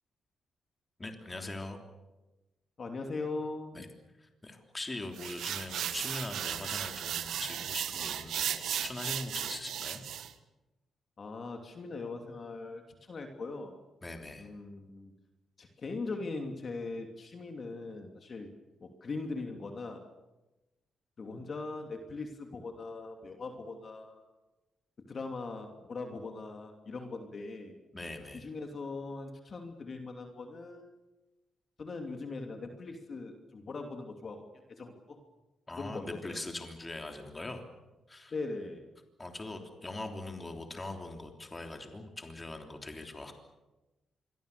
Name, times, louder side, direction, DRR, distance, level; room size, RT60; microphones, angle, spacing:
voice 1, 1.0-1.8 3.7-3.9 4.2-10.0 14.0-14.5 27.9-28.5 35.7-37.6 38.1-38.3 39.2-43.3, left 2 dB, 20° left, 4 dB, 3.3 m, -41 dB
voice 2, 2.8-3.9 11.2-13.7 14.4-15.1 15.6-18.5 18.8-20.0 21.2-24.2 25.0-27.7 28.3-30.9 31.8-34.4 34.7-35.2 35.8-36.4 38.3-38.9, left 3 dB, 40° left, 4 dB, 2.9 m, -40 dB
sound 1, 5.2-10.3, right 10 dB, 80° right, 1.5 m, -36 dB
27.0 x 23.0 x 6.9 m, 1.1 s
cardioid pair, 125°, 0 cm